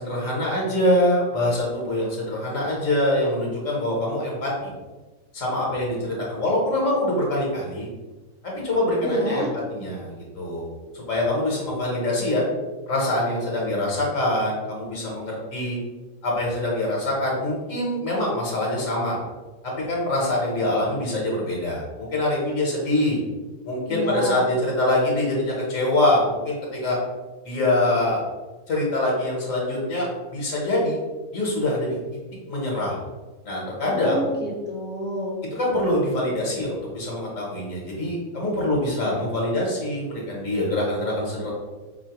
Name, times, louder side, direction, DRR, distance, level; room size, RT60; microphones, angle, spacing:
voice 1, 0.0-4.7 5.3-7.9 8.4-10.7 10.9-12.4 12.9-15.8 16.2-19.2 19.9-21.8 22.1-23.2 23.6-27.0 27.4-28.2 28.7-31.0 31.3-32.0 32.5-33.0 33.4-34.3 35.5-41.5, left 1 dB, 70° left, -3 dB, 1.3 m, -24 dB
voice 2, 9.0-9.5 23.8-24.4 33.8-35.4, right 1 dB, 10° right, -5 dB, 0.6 m, -28 dB
4.1 x 2.8 x 2.9 m, 1.2 s
omnidirectional pair, 1.5 m